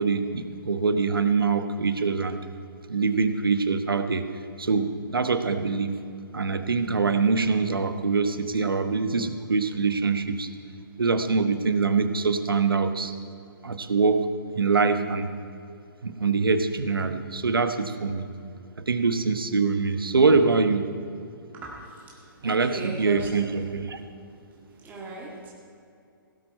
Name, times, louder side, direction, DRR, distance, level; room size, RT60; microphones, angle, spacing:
voice 1, 0.0-2.4 2.9-4.2 4.6-5.9 6.3-10.5 11.0-13.1 13.6-14.3 14.5-15.3 16.0-18.3 18.8-20.9 22.4-24.0, right 4 dB, 75° right, 9 dB, 1.1 m, -24 dB
voice 2, 21.5-23.5 24.7-25.5, right 2 dB, 15° right, -4 dB, 2.1 m, -39 dB
17.5 x 11.5 x 4.4 m, 2.5 s
figure-of-eight pair, 130°, 12 cm